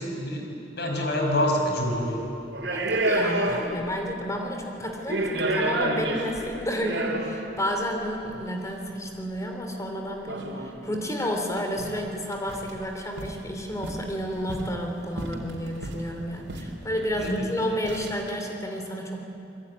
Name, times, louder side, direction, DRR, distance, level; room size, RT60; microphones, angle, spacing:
voice 1, 0.0-2.2 17.2-17.4, left 1 dB, 65° left, 1 dB, 5.8 m, -26 dB
sound 1, 1.8-2.0 2.5-3.9 4.2-4.3 4.9-7.5 8.5-8.6 10.3-10.7 11.2-11.3 11.6-12.0 12.3-12.8 13.2-13.4 13.8-14.8 15.2-16.1 16.5-16.7 17.0-17.4 17.8-18.3, right 2 dB, 80° right, 4.0 m, -29 dB
voice 2, 2.7-19.2, equal, 20° left, 2 dB, 3.0 m, -31 dB
27.5 x 21.5 x 9.9 m, 2.9 s
head